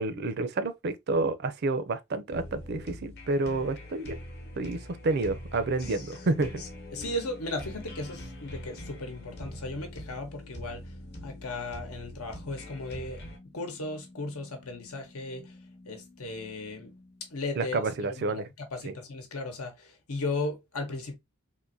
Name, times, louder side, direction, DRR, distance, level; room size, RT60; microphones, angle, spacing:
voice 1, 0.0-4.2 4.6-6.6 17.6-18.5, right 3 dB, 50° right, 0.5 m, -29 dB
sound 1, 2.3-13.4, equal, 50° left, 0.9 m, -43 dB
voice 2, 5.8-6.2 6.6-10.9 11.2-13.2 13.5-15.6 15.9-16.9 17.3-17.8 18.1-21.2, left 2 dB, 90° left, 1.0 m, -36 dB
sound 2, 5.8-18.0, left 1 dB, 5° left, 0.5 m, -53 dB
3.7 x 2.6 x 2.5 m
head